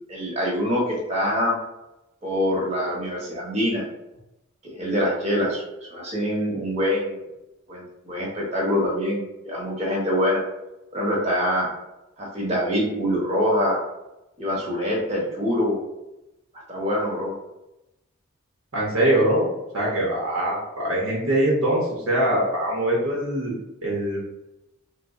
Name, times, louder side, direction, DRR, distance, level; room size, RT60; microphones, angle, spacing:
voice 1, 0.1-1.5 2.2-3.8 4.6-5.6 5.9-7.2 7.7-10.4 10.9-11.7 12.2-13.8 14.4-15.8 16.7-17.3, equal, 30° right, -3 dB, 1.0 m, -24 dB
voice 2, 18.7-19.5 19.7-23.5 23.8-24.2, right 1 dB, 70° right, -4 dB, 0.8 m, -22 dB
3.1 x 2.0 x 3.6 m, 0.93 s
head